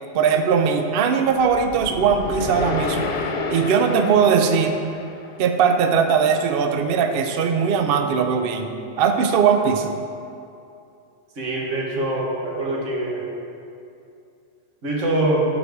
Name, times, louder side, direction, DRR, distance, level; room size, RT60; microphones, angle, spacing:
voice 1, 0.1-3.1 3.5-4.8 5.4-8.7 9.0-9.9, right 6 dB, 60° right, 5 dB, 0.7 m, -19 dB
sound 1, 1.4-5.7, left 4 dB, 55° left, 0.5 m, -30 dB
voice 2, 11.4-13.2 14.8-15.5, right 2 dB, 85° right, -3 dB, 1.7 m, -24 dB
7.5 x 4.7 x 6.5 m, 2.6 s
omnidirectional pair, 1.3 m